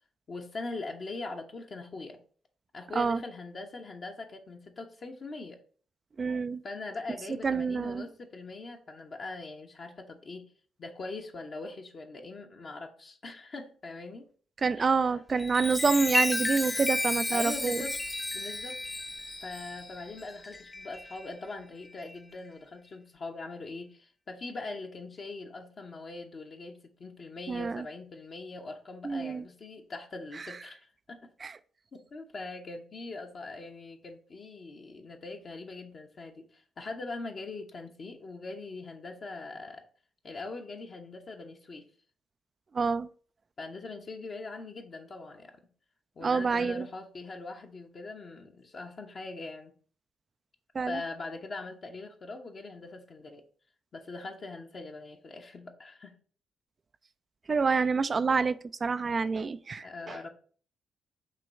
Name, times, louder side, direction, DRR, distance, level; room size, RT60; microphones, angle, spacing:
voice 1, 0.3-2.2 2.7-5.6 6.6-10.5 10.8-14.3 14.8-14.9 17.3-18.0 18.3-18.8 19.4-31.3 31.9-39.8 40.2-41.8 43.6-45.5 46.2-49.7 50.9-53.4 53.9-56.1 59.8-60.3, left 3 dB, 45° left, 0.9 m, -42 dB
voice 2, 6.2-6.6 7.4-8.1 14.6-17.8 27.5-27.8 29.0-29.4 31.4-31.5 42.7-43.1 46.2-46.9 50.7-51.0 57.5-60.2, right 4 dB, 35° right, 0.3 m, -27 dB
Chime, 15.3-21.3 21.8-22.1, left 1 dB, 20° left, 0.5 m, -33 dB
6.5 x 3.0 x 5.5 m
figure-of-eight pair, 40°, 0 cm